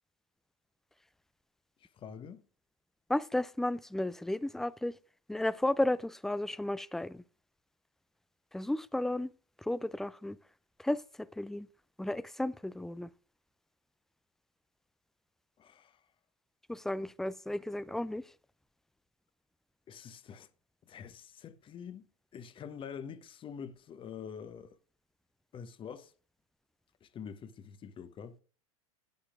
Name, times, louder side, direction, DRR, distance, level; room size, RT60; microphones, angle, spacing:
voice 1, 1.8-2.4 15.6-16.0 19.9-20.5 20.8-22.1 22.3-24.8 25.5-26.1 27.0-28.4, left 7 dB, 30° left, 0.9 m, -46 dB
voice 2, 3.1-4.9 5.3-7.2 8.5-9.3 9.6-10.4 10.8-11.0 11.4-11.7 12.0-13.1 16.7-18.2, left 1 dB, ahead, 0.4 m, -33 dB
10.5 x 9.9 x 2.5 m
hypercardioid pair, 90°, 18 cm